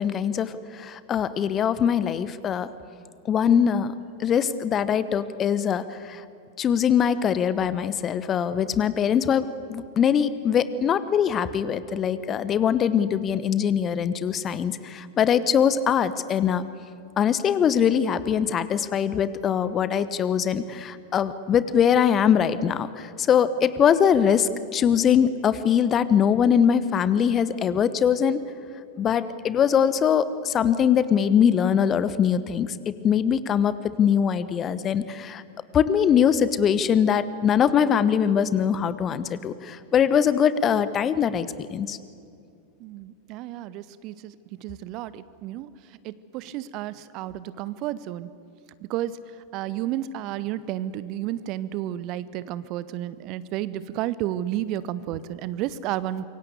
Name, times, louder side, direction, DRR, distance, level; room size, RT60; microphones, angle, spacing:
voice 1, 0.0-2.7 3.3-3.9 4.2-6.2 6.6-16.6 17.2-28.4 29.0-35.4 35.7-42.0, left 8 dB, 25° left, 15 dB, 1.1 m, -22 dB
voice 2, 42.8-44.3 44.6-45.7 46.0-48.3 48.9-49.2 49.5-56.2, right 13 dB, 40° right, 17 dB, 0.9 m, -31 dB
26.5 x 23.5 x 8.2 m, 2.5 s
figure-of-eight pair, 90°, 0 cm